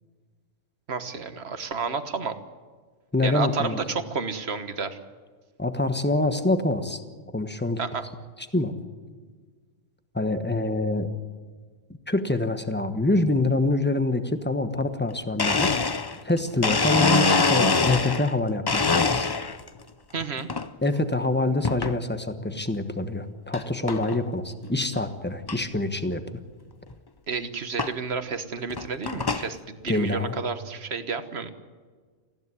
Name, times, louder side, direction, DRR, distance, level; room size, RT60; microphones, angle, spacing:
voice 1, 0.9-2.3 3.2-5.0 7.8-8.1 20.1-20.5 27.3-31.5, right 5 dB, 55° right, 10 dB, 1.5 m, -31 dB
voice 2, 3.1-3.8 5.6-7.0 7.3-7.8 8.5-8.7 10.1-11.1 12.1-15.7 16.2-19.3 20.8-26.2 29.9-30.4, left 2 dB, 10° left, 8 dB, 1.1 m, -25 dB
Domestic sounds home sounds, 15.0-15.1 15.4-18.3 18.7-19.7 20.2-20.7 21.6-22.0 22.6-22.7 23.5-23.6 23.9-24.2 24.6-24.7 24.9-25.0 25.5-25.6 26.9-27.0 27.8-27.9 28.6-29.5, left 4 dB, 30° left, 0.4 m, -24 dB
19.5 x 15.5 x 9.7 m, 1.5 s
omnidirectional pair, 1.3 m